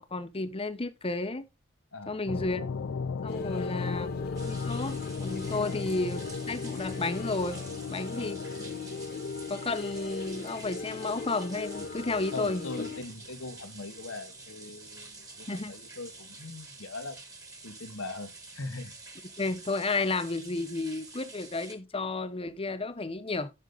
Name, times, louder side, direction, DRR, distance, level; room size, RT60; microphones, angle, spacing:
voice 1, 0.0-1.4 2.1-2.7 3.2-4.1 4.4-7.6 7.9-8.4 9.5-12.7 15.5-15.7 19.4-23.5, left 3 dB, 30° left, 0.8 m, -32 dB
sound 1, 2.3-14.1, left 5 dB, 70° left, 0.4 m, -38 dB
sound 2, 3.3-13.0, left 4 dB, 55° left, 1.4 m, -39 dB
voice 2, 3.4-4.1 5.6-5.8 8.1-8.7 12.3-17.2 17.6-19.0, left 2 dB, 90° left, 1.4 m, -41 dB
sound 3, 4.4-21.7, right 3 dB, 15° right, 1.5 m, -48 dB
7.6 x 6.6 x 3.9 m
head